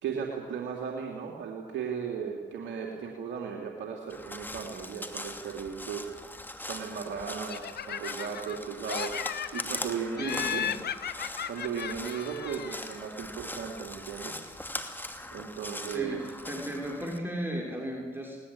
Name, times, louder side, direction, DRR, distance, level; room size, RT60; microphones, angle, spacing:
voice 1, 0.0-6.1 6.6-9.2 9.5-10.6 11.5-14.4 15.3-16.2, right 7 dB, 75° right, 0 dB, 3.1 m, -36 dB
Crow, 4.1-17.2, left 1 dB, 10° left, 2.6 m, -41 dB
Laughter, 7.5-8.6 8.9-9.8 10.2-13.0, left 9 dB, 60° left, 0.9 m, -36 dB
voice 2, 10.2-10.8 15.9-16.2 16.4-18.4, equal, 10° right, -1 dB, 6.4 m, -35 dB
20.0 x 20.0 x 8.8 m, 1.3 s
supercardioid pair, 50°, 19 cm